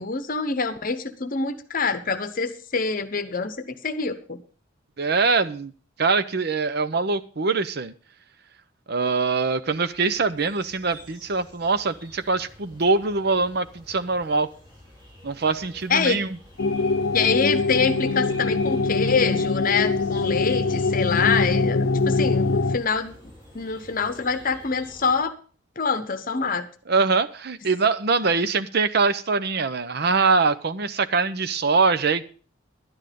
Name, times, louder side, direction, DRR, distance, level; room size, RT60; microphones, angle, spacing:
voice 1, 0.0-4.4 15.9-16.2 17.1-23.1 23.5-25.3 25.8-26.7, left 5 dB, 45° left, 1.0 m, -25 dB
voice 2, 5.0-5.7 6.0-7.9 8.9-14.5 15.2-16.3 26.9-32.2, right 4 dB, 55° right, 0.7 m, -23 dB
sound 1, 9.6-25.2, equal, 25° right, 5.2 m, -48 dB
sound 2, 16.6-22.8, left 3 dB, 85° left, 0.6 m, -23 dB
11.5 x 9.9 x 5.2 m
head